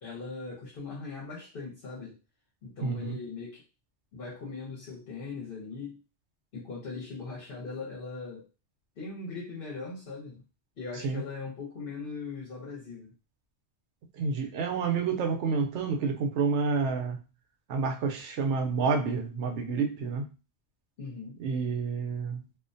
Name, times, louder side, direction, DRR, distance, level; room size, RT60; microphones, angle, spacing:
voice 1, 0.0-2.1 2.6-3.6 4.1-5.9 6.5-8.5 9.0-10.4 10.8-13.1 21.0-21.4, left 4 dB, 60° left, 0.9 m, -40 dB
voice 2, 2.8-3.2 11.0-11.2 14.1-17.2 17.7-20.3 21.4-22.4, right 5 dB, 85° right, 0.9 m, -29 dB
2.4 x 2.1 x 2.5 m
omnidirectional pair, 1.2 m